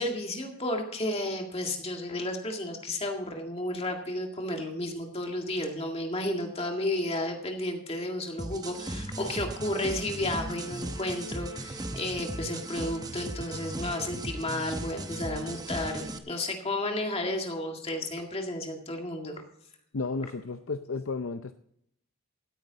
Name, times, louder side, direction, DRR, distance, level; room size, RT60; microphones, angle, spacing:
voice 1, 0.0-19.4, left 1 dB, 25° left, 3 dB, 1.9 m, -32 dB
sound 1, 8.4-16.2, right 1 dB, 15° right, 0.8 m, -37 dB
voice 2, 19.9-21.5, left 3 dB, 60° left, 10 dB, 0.6 m, -33 dB
17.0 x 9.6 x 4.0 m, 0.73 s
head